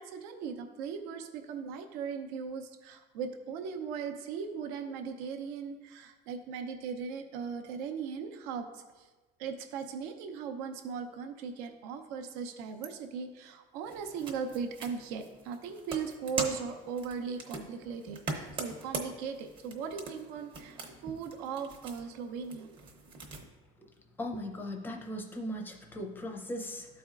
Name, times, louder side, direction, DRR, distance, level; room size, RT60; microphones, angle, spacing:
voice 1, 0.0-9.1 9.4-22.7, right 6 dB, 75° right, 6 dB, 0.7 m, -38 dB
sound 1, 13.8-23.4, right 3 dB, 25° right, 0.8 m, -42 dB
voice 2, 24.2-27.0, equal, 10° left, 2 dB, 0.5 m, -38 dB
12.5 x 4.2 x 2.4 m, 1.2 s
cardioid pair, 175°, 19 cm